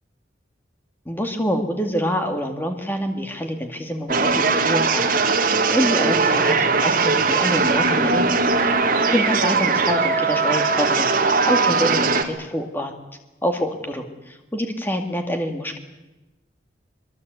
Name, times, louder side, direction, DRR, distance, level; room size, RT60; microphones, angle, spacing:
voice 1, 1.1-5.1 5.4-8.3 9.1-11.1 11.4-12.9 13.4-15.8, equal, 10° left, 5 dB, 2.2 m, -26 dB
sound 1, 4.1-12.2, right 4 dB, 45° right, 2.2 m, -20 dB
24.0 x 22.5 x 8.2 m, 1.1 s
head